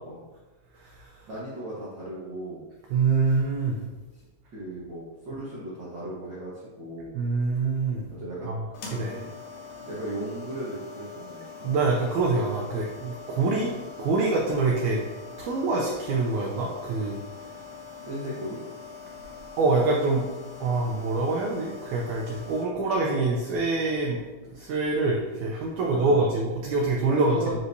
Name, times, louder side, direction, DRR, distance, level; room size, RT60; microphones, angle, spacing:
voice 1, 1.3-2.6 4.5-7.1 8.1-8.5 8.8-9.2 9.8-11.7 18.0-18.6 25.8-26.3 27.1-27.5, right 1 dB, 70° right, -8 dB, 1.0 m, -36 dB
voice 2, 2.9-3.9 7.1-8.1 8.5-8.6 8.9-9.2 11.6-13.7 14.0-15.0 15.4-17.2 19.6-20.3 20.6-24.2 24.4-27.4, right 3 dB, 90° right, -1 dB, 1.7 m, -25 dB
sound 1, 8.7-22.6, left 5 dB, 65° left, 2.2 m, -43 dB
9.4 x 4.5 x 2.7 m, 1.2 s
omnidirectional pair, 4.3 m